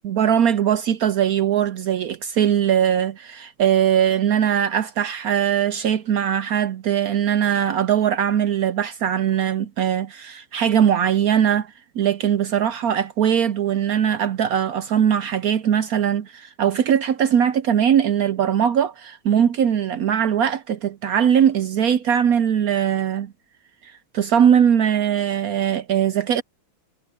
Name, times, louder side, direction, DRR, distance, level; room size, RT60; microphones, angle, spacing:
voice 1, 0.0-23.3 23.8-26.4, right 9 dB, 70° right, 0.9 m, -20 dB
omnidirectional pair, 2.1 m